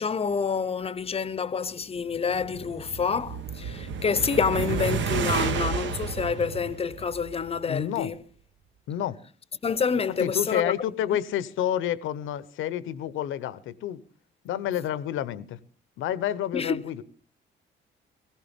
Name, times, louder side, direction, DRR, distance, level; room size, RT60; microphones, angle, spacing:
voice 1, 0.0-8.2 9.6-10.7 11.1-11.2 16.5-16.9, left 6 dB, 30° left, 0.6 m, -28 dB
sound 1, 2.1-7.6, right 6 dB, 70° right, 1.0 m, -31 dB
voice 2, 7.6-8.1 8.9-9.2 10.2-14.0 14.4-15.6 16.0-17.0, left 11 dB, 85° left, 0.8 m, -29 dB
18.5 x 15.5 x 3.5 m
cardioid pair, 90°, 20 cm